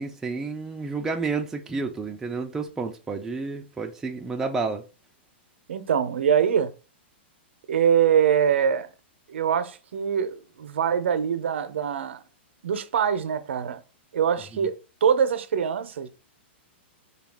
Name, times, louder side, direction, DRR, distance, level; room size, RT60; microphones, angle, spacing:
voice 1, 0.0-4.8 14.5-14.7, right 4 dB, 5° right, 0.4 m, -30 dB
voice 2, 5.7-6.7 7.7-8.9 9.3-12.2 12.6-13.8 14.1-16.1, right 8 dB, 85° right, 0.6 m, -23 dB
4.0 x 2.3 x 3.5 m
hypercardioid pair, 155°, 6 cm